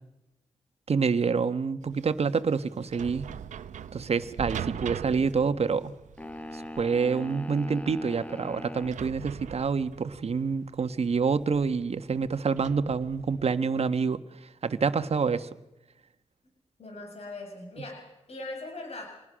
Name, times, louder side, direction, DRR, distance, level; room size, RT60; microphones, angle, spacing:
voice 1, 0.9-3.3 3.9-5.9 6.5-15.5, right 5 dB, 55° right, 11 dB, 1.4 m, -27 dB
sound 1, 1.8-13.5, right 9 dB, 85° right, 0.8 m, -42 dB
sound 2, 6.2-9.0, left 1 dB, 10° left, 1.5 m, -40 dB
voice 2, 16.8-19.1, left 2 dB, 55° left, 2 dB, 7.0 m, -40 dB
26.5 x 19.5 x 6.4 m, 0.92 s
cardioid pair, 60°, 12 cm